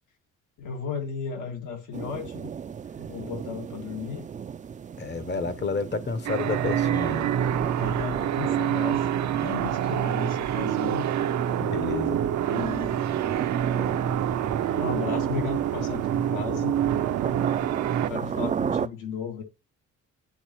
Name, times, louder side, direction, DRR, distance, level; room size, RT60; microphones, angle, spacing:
voice 1, 0.6-2.5 3.0-4.3 7.8-11.0 12.4-13.1 14.7-16.7 18.1-19.4, left 6 dB, 85° left, 1.9 m, -35 dB
sound 1, 1.9-18.9, right 7 dB, 25° right, 0.3 m, -35 dB
voice 2, 5.0-7.3 11.6-12.2, left 4 dB, 35° left, 0.8 m, -30 dB
sound 2, 6.3-18.1, right 10 dB, 65° right, 0.6 m, -26 dB
10.0 x 3.9 x 2.9 m
cardioid pair, 90°, 30 cm